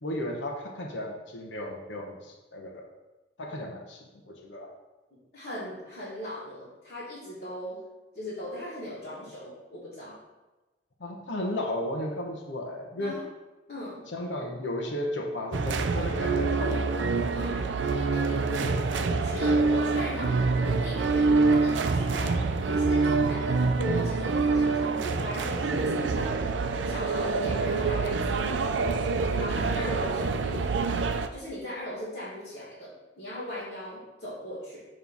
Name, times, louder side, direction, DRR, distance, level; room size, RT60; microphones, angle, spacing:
voice 1, 0.0-2.9 3.4-4.7 11.0-13.2 14.1-17.1, left 1 dB, 85° left, 1 dB, 0.9 m, -34 dB
voice 2, 5.3-7.8 8.1-10.2 12.9-13.2 13.7-14.0 17.3-17.7 18.1-22.4 22.6-26.3 26.8-28.6 29.4-31.1 31.3-34.9, left 1 dB, 40° left, -12 dB, 2.1 m, -38 dB
sound 1, 15.5-31.3, right 4 dB, 80° right, 0.5 m, -26 dB
7.1 x 3.2 x 5.3 m, 1.1 s
head